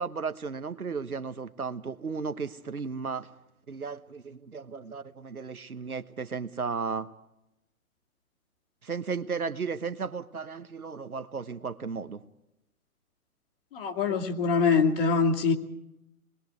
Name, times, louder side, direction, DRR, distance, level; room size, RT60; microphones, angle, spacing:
voice 1, 0.0-3.3 3.7-7.1 8.8-12.2, right 5 dB, 80° right, 11 dB, 1.2 m, -34 dB
voice 2, 13.7-15.5, left 5 dB, 40° left, 3 dB, 2.5 m, -24 dB
27.5 x 21.0 x 4.7 m, 0.88 s
figure-of-eight pair, 130°, 43 cm